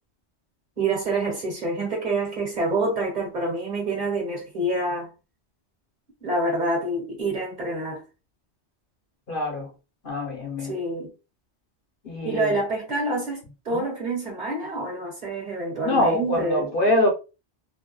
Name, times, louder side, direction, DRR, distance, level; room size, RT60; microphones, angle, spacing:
voice 1, 0.8-5.1 6.2-8.0 10.6-11.1 12.2-16.7, right 2 dB, 45° right, 1.2 m, -27 dB
voice 2, 9.3-9.7 10.0-10.7 12.0-12.5 13.7-13.8 15.8-17.1, left 1 dB, 55° left, 1.1 m, -24 dB
2.6 x 2.3 x 2.3 m
omnidirectional pair, 1.1 m